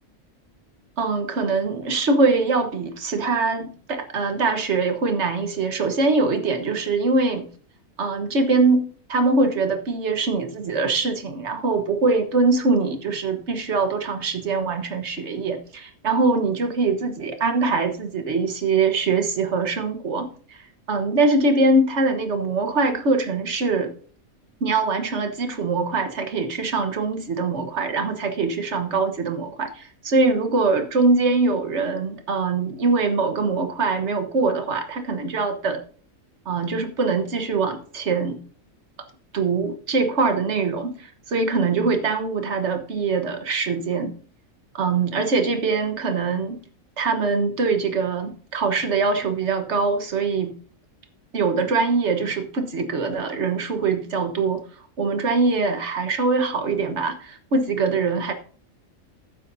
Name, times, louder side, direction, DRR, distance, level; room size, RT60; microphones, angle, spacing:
voice 1, 1.0-7.5 8.0-23.9 24.6-35.8 36.4-38.4 39.3-44.2 44.7-46.6 47.0-50.5 51.3-54.6 55.0-58.3, right 3 dB, 55° right, 1.5 m, -23 dB
14.5 x 7.6 x 2.7 m
omnidirectional pair, 1.4 m